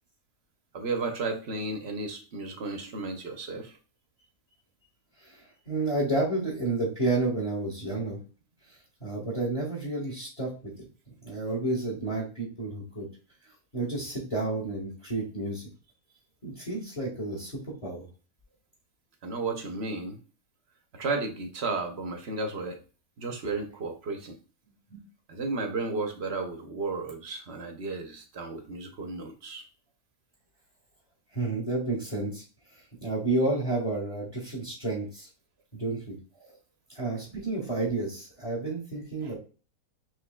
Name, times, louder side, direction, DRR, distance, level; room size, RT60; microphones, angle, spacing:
voice 1, 0.7-3.8 19.2-20.2 20.9-22.8 23.2-24.4 25.3-29.6 36.4-36.5 39.2-39.3, right 3 dB, 55° right, 5 dB, 0.9 m, -33 dB
voice 2, 5.2-8.2 9.0-10.5 11.2-13.1 13.7-15.6 16.4-18.1 24.9-25.0 31.3-32.4 32.7-35.3 35.7-36.2 36.9-39.4, right 2 dB, 25° left, -3 dB, 1.5 m, -30 dB
6.4 x 3.1 x 2.3 m, 0.35 s
omnidirectional pair, 1.5 m